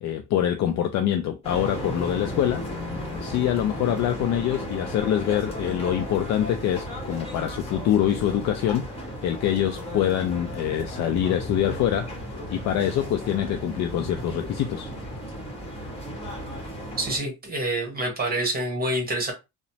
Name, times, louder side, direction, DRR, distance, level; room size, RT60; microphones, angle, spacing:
voice 1, 0.0-2.6 3.2-12.1 12.5-14.9, left 10 dB, 60° left, 0.4 m, -25 dB
sound 1, 1.4-17.2, equal, 20° left, 1.2 m, -35 dB
voice 2, 17.0-19.3, right 1 dB, 30° right, 1.1 m, -27 dB
3.0 x 2.0 x 2.7 m
cardioid pair, 120°, 32 cm